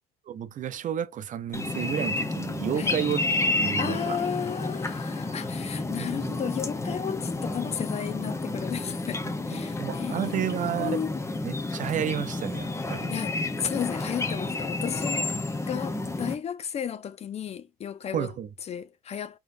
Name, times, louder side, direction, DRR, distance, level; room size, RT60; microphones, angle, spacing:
voice 1, 0.3-3.2 3.6-4.2 6.0-6.4 9.2-11.0 11.4-13.1 18.1-18.5, right 10 dB, 50° right, 0.6 m, -31 dB
sound 1, 1.5-16.3, left 2 dB, 15° left, 0.8 m, -31 dB
voice 2, 3.7-11.2 13.1-15.3 15.7-18.3 18.7-19.4, left 8 dB, 40° left, 0.5 m, -34 dB
4.0 x 3.8 x 2.6 m
cardioid pair, 110°, 17 cm